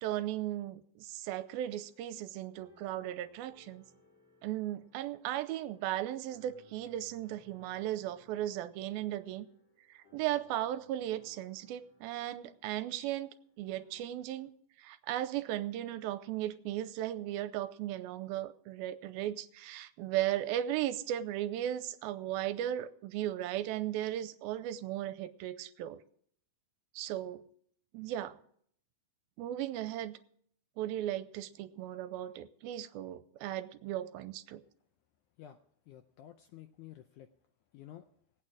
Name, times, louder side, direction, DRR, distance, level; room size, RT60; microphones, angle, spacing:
voice 1, 0.0-3.8 4.4-9.5 9.9-13.3 13.6-14.5 14.8-26.0 27.0-27.4 27.9-28.4 29.4-30.2 30.8-34.6, right 12 dB, 85° right, 13 dB, 2.5 m, -36 dB
sound 1, 1.6-14.5, left 2 dB, 40° left, 6.2 m, -66 dB
voice 2, 35.9-37.3 37.7-38.1, left 12 dB, 80° left, 7 dB, 1.8 m, -51 dB
19.0 x 8.9 x 4.9 m, 0.62 s
omnidirectional pair, 4.2 m